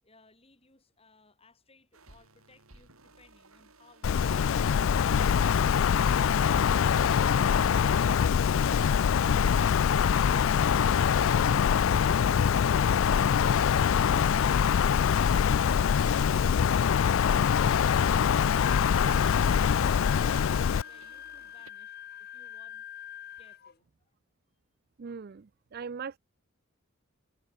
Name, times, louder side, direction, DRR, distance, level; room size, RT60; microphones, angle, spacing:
voice 1, 0.0-5.2 17.0-22.8 23.4-24.2, left 2 dB, 25° left, 6.9 m, -61 dB
sound 1, 1.9-21.7, right 2 dB, 75° right, 7.8 m, -52 dB
Wind, 4.0-20.8, left 7 dB, 65° left, 0.3 m, -24 dB
Wind instrument woodwind instrument, 18.5-23.7, left 10 dB, 45° left, 0.8 m, -43 dB
voice 2, 25.0-26.2, right 5 dB, 45° right, 0.4 m, -40 dB
head